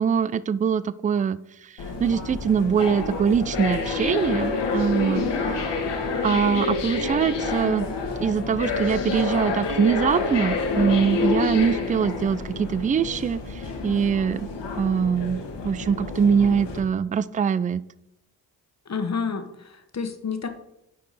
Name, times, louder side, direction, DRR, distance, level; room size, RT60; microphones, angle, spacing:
voice 1, 0.0-1.4 2.0-5.6 6.2-7.9 8.2-14.5 14.8-17.8, right 7 dB, 20° right, 17 dB, 0.3 m, -23 dB
sound 1, 1.8-16.8, left 4 dB, 60° left, 1.5 m, -28 dB
voice 2, 11.5-12.0 18.8-20.5, left 5 dB, 35° left, 8 dB, 1.3 m, -31 dB
9.4 x 4.5 x 4.1 m, 0.83 s
hypercardioid pair, 40°, 47 cm